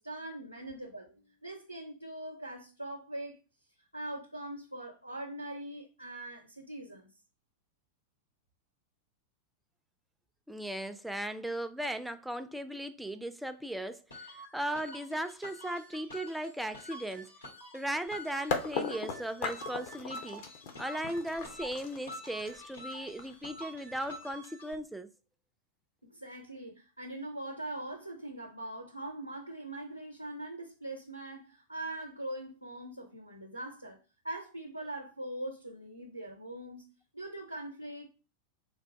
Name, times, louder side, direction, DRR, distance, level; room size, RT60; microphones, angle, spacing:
voice 1, 0.0-3.4 3.9-7.1 26.0-34.0 34.2-38.1, right 1 dB, 90° right, 0.6 m, -42 dB
voice 2, 10.5-17.3 17.7-20.4 20.8-25.1, right 1 dB, 5° right, 0.3 m, -37 dB
sound 1, 14.1-24.7, equal, 85° left, 1.8 m, -47 dB
sound 2, 18.1-18.2 18.5-24.3, left 5 dB, 50° left, 0.6 m, -38 dB
3.5 x 2.5 x 4.3 m
figure-of-eight pair, 90°, 0 cm